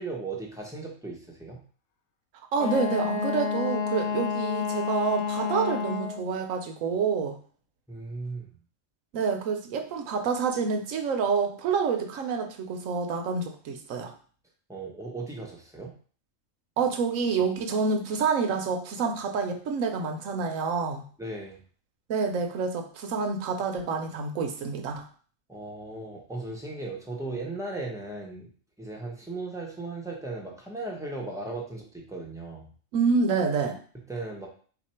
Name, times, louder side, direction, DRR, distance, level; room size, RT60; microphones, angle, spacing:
voice 1, 0.0-1.6 7.9-8.5 14.7-15.9 21.2-21.6 25.5-28.5 28.8-32.7 34.1-34.5, right 2 dB, 5° right, -2 dB, 0.6 m, -37 dB
voice 2, 2.5-7.4 9.1-14.1 16.8-21.0 22.1-25.0 32.9-33.8, right 5 dB, 70° right, 5 dB, 1.0 m, -28 dB
Wind instrument woodwind instrument, 2.6-6.3, left 6 dB, 65° left, 0.6 m, -29 dB
4.2 x 2.6 x 4.2 m, 0.43 s
omnidirectional pair, 1.5 m